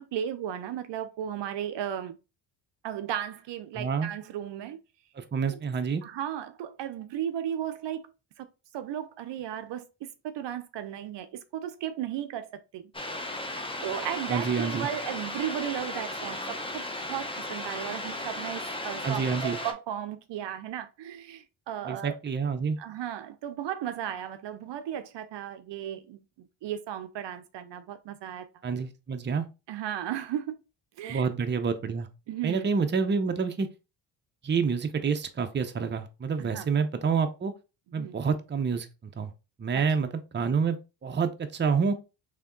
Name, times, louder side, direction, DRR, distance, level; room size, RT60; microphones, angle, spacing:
voice 1, 0.0-2.2 2.8-4.8 6.0-8.5 8.7-12.9 13.8-22.2 22.8-28.5 29.7-30.5 31.0-31.3 32.3-32.7 36.4-36.7 37.9-38.2 39.7-39.9, right 10 dB, 60° right, 0.6 m, -35 dB
voice 2, 3.7-4.1 5.2-6.0 14.3-14.9 19.0-19.6 21.8-22.8 28.6-29.5 31.1-32.1 32.4-33.7 34.4-37.5 37.9-38.9 39.2-39.3 39.6-40.8 41.0-41.9, right 5 dB, 25° right, 0.6 m, -28 dB
sound 1, 12.9-19.7, left 1 dB, 10° left, 0.8 m, -35 dB
3.4 x 2.9 x 3.7 m
cardioid pair, 75°, 49 cm